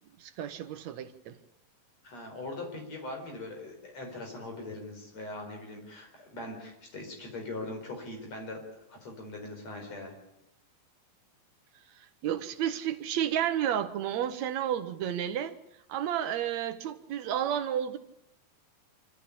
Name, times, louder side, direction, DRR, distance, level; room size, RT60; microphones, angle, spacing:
voice 1, 0.2-1.4 12.2-15.5 15.9-18.0, right 10 dB, 70° right, 10 dB, 1.8 m, -31 dB
voice 2, 2.0-8.6 8.9-10.1, left 2 dB, 45° left, 3 dB, 5.8 m, -41 dB
25.5 x 13.5 x 8.6 m, 0.85 s
omnidirectional pair, 4.2 m